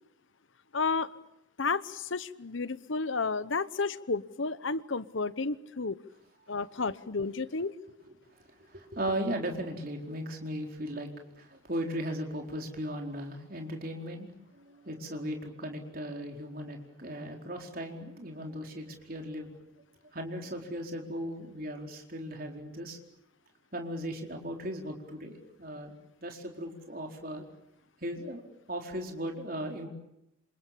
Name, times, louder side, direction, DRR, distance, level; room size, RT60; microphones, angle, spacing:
voice 1, 0.7-1.1 1.6-6.0 6.5-7.7, left 4 dB, 75° left, 15 dB, 1.0 m, -32 dB
voice 2, 8.6-11.1 11.3-14.3 14.5-19.5 20.1-23.0 23.7-25.9 26.2-27.4 28.0-28.4 28.7-29.9, equal, 45° right, 2 dB, 4.5 m, -37 dB
28.0 x 27.5 x 6.9 m, 0.84 s
head